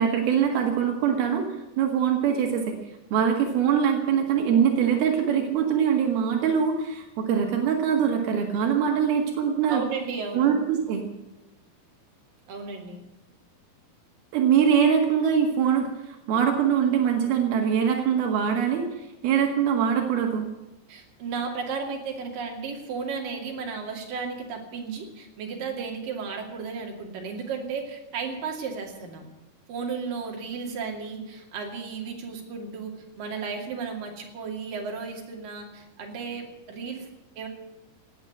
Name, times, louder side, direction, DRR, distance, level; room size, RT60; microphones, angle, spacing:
voice 1, 0.0-1.5 1.8-2.8 3.1-9.8 10.3-11.0 14.3-18.9 19.2-20.5, right 8 dB, 90° right, 3 dB, 3.8 m, -23 dB
voice 2, 9.7-10.5 12.5-13.1 20.9-29.3 29.7-37.1 37.4-37.5, right 5 dB, 65° right, 1 dB, 4.2 m, -34 dB
18.0 x 9.4 x 8.0 m, 0.99 s
omnidirectional pair, 4.3 m